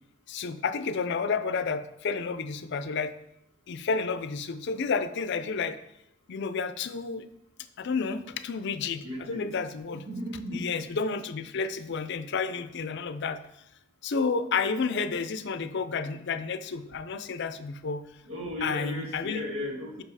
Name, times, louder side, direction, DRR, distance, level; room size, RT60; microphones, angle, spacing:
voice 1, 0.3-3.1 3.7-5.8 6.3-7.3 7.8-10.1 10.5-13.4 14.0-18.0 18.6-19.5, left 5 dB, 60° left, 11 dB, 0.5 m, -31 dB
voice 2, 9.0-9.4 10.0-10.6 18.2-20.0, left 1 dB, 80° right, -1 dB, 1.8 m, -35 dB
5.8 x 5.5 x 4.7 m, 0.82 s
head